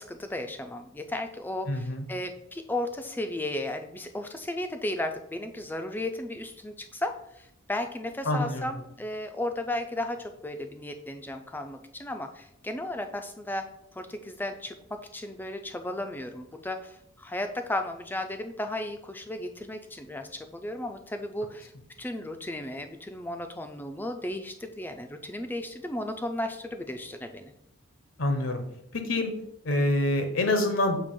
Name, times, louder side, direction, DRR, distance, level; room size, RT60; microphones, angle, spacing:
voice 1, 0.0-13.7 13.9-21.7 22.0-27.5, left 1 dB, 10° left, 6 dB, 0.4 m, -35 dB
voice 2, 1.7-2.0 8.3-8.7 28.2-28.6 28.9-29.3 29.6-31.0, left 1 dB, 65° left, 6 dB, 0.7 m, -26 dB
6.7 x 2.9 x 5.3 m, 0.78 s
head